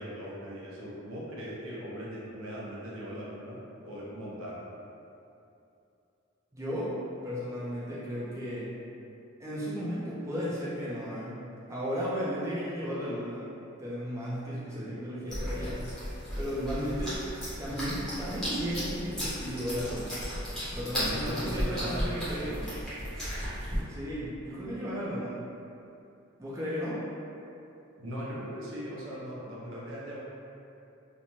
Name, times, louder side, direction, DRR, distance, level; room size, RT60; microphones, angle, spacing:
voice 1, 0.0-3.6 3.8-4.6 14.7-15.0 20.9-22.1 28.0-30.2, equal, 75° right, -6 dB, 0.6 m, -39 dB
voice 2, 6.5-6.9 7.2-8.7 9.4-11.4 11.7-13.5 13.8-15.8 16.4-17.2 17.6-20.2 20.7-22.7 23.9-25.3 26.4-27.0, equal, 15° right, -9 dB, 0.4 m, -34 dB
sound 1, 15.3-23.8, equal, 5° left, 0.8 m, -35 dB
2.5 x 2.1 x 3.0 m, 2.7 s
head